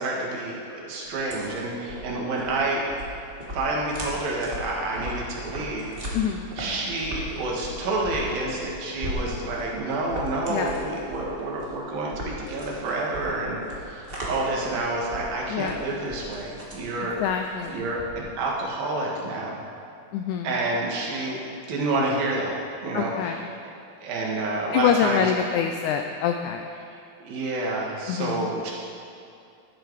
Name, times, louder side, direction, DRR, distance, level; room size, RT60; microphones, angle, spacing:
voice 1, 0.0-2.8 3.5-5.9 6.6-17.2 17.7-19.6 20.4-21.4 21.7-23.4 24.0-25.3 26.9-28.7, right 2 dB, 80° right, -3 dB, 3.5 m, -29 dB
sound 1, 1.1-18.5, equal, 25° right, 1.3 m, -38 dB
voice 2, 6.1-6.5 10.5-10.7 15.5-15.8 17.0-17.9 20.1-20.5 22.9-23.5 24.7-26.7 28.1-28.5, left 8 dB, 90° left, 5 dB, 1.7 m, -26 dB
12.0 x 10.0 x 4.8 m, 2.6 s
omnidirectional pair, 4.0 m